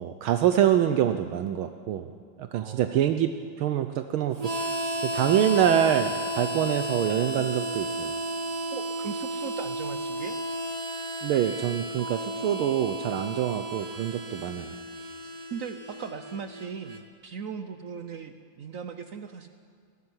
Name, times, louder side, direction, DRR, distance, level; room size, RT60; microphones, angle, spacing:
voice 1, 0.0-2.1 2.4-3.3 3.6-8.1 11.2-14.7, right 10 dB, 75° right, 8 dB, 1.5 m, -25 dB
voice 2, 2.5-3.1 8.7-10.4 15.2-19.5, right 7 dB, 90° right, 9 dB, 0.7 m, -39 dB
Harmonica, 4.4-17.0, equal, 25° right, 0.9 m, -33 dB
21.0 x 13.5 x 9.8 m, 2.2 s
omnidirectional pair, 2.4 m